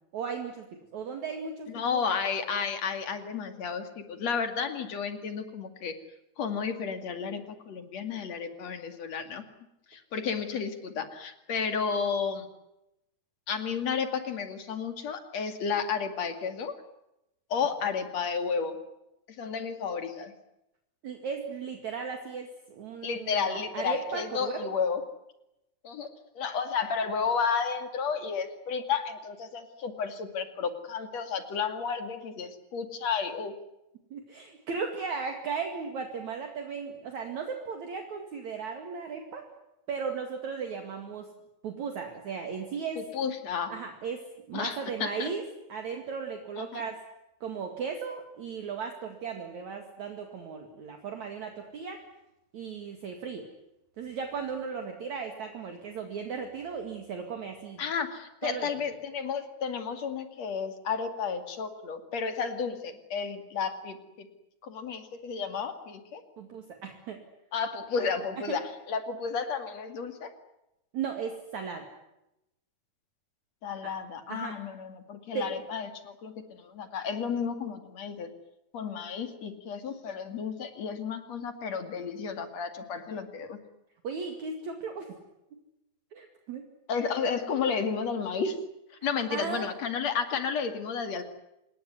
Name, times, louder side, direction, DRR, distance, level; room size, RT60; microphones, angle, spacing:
voice 1, 0.1-0.7 0.9-2.0 21.0-24.7 34.1-39.5 39.9-41.3 41.6-43.0 43.7-47.0 47.4-52.0 52.5-53.5 54.0-57.8 58.4-58.7 66.4-67.2 68.5-68.6 70.9-71.9 73.8-73.9 74.3-74.6 75.3-75.6 84.0-85.1 86.1-86.6 89.3-89.7, right 5 dB, 55° right, 4 dB, 3.2 m, -36 dB
voice 2, 1.7-5.9 6.4-9.4 9.9-12.5 13.5-16.7 17.5-18.8 19.4-20.3 23.0-25.0 25.8-26.1 26.3-33.5 43.0-43.7 44.5-45.3 46.6-46.8 57.8-64.3 64.6-66.2 67.5-70.3 73.6-78.3 78.7-83.6 86.9-88.6 89.0-91.2, left 6 dB, 50° left, 8 dB, 3.2 m, -32 dB
27.0 x 20.5 x 9.6 m, 0.88 s
omnidirectional pair, 4.5 m